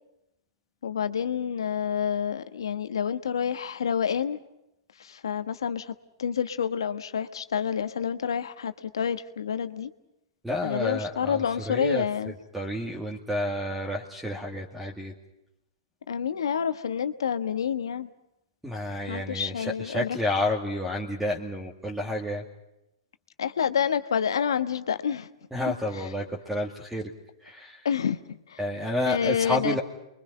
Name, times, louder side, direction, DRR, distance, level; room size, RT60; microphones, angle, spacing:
voice 1, 0.8-4.4 5.0-5.9 6.2-9.9 10.6-12.3 16.1-18.1 19.1-20.2 23.4-25.3 25.7-25.8 27.8-28.6 29.1-29.8, left 7 dB, 75° left, 10 dB, 1.3 m, -28 dB
voice 2, 10.4-15.1 18.6-22.4 25.5-27.1 27.4-27.9 28.6-29.8, left 1 dB, 5° right, -1 dB, 2.3 m, -30 dB
29.5 x 23.5 x 5.5 m, 0.88 s
hypercardioid pair, 115°, 2 cm